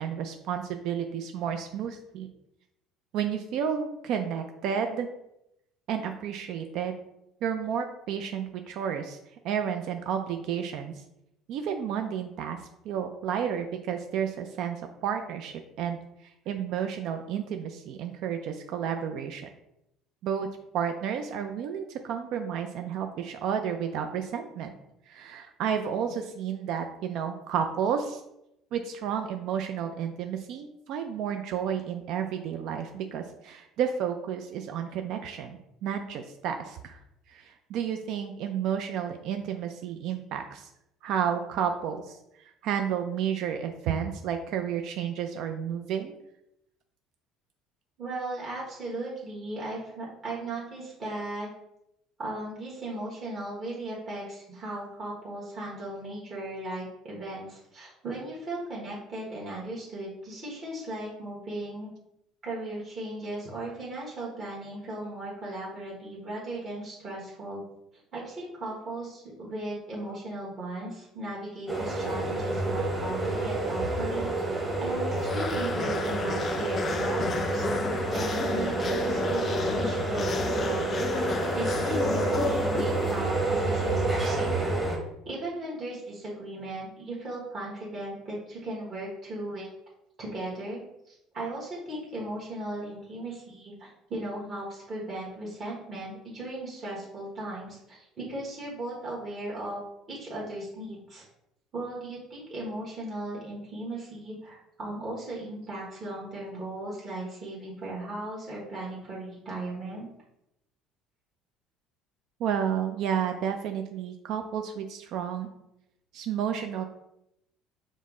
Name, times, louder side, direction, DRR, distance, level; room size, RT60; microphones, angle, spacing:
voice 1, 0.0-2.3 3.1-5.1 5.9-7.0 7.4-9.2 9.4-10.9 11.5-12.6 12.8-19.5 20.2-20.5 20.7-24.7 25.1-28.2 28.7-37.0 37.3-40.7 41.0-42.2 42.6-46.1 112.4-115.5 116.1-116.8, right 8 dB, 65° right, 6 dB, 0.3 m, -31 dB
voice 2, 48.0-51.5 52.2-61.9 62.4-67.6 68.1-74.3 74.8-81.0 81.5-89.7 90.2-99.8 100.1-101.2 101.7-110.1, right 1 dB, 35° right, -6 dB, 1.2 m, -37 dB
sound 1, 71.7-85.0, right 2 dB, 5° right, 0.9 m, -29 dB
sound 2, 75.1-83.6, left 5 dB, 35° left, 0.3 m, -33 dB
5.4 x 2.0 x 3.7 m, 0.84 s
cardioid pair, 115°, 0 cm